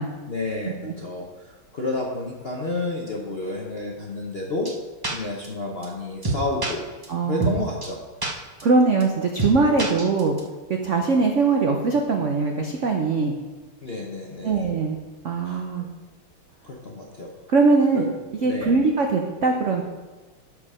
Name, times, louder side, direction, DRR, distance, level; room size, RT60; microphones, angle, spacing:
voice 1, 0.3-4.7 5.1-6.9 7.2-8.0 13.8-14.6 15.5-15.6 16.6-17.3 17.9-18.0 18.4-18.7, left 2 dB, 55° left, -2 dB, 0.7 m, -30 dB
sound 1, 4.7-4.8 5.0-5.1 5.4-5.5 5.8-5.9 6.2-6.7 7.0-7.1 7.4-7.5 7.8-7.9 8.2-8.3 8.6-8.7 9.0-9.1 9.4-9.5 9.8-10.4, right 2 dB, 20° right, 0.6 m, -25 dB
voice 2, 7.1-7.6 8.6-10.4 10.7-13.4 14.4-15.0 15.2-15.9 17.5-18.0 18.4-19.8, right 4 dB, 85° right, 2 dB, 0.6 m, -21 dB
12.0 x 4.8 x 4.9 m, 1.2 s
omnidirectional pair, 2.4 m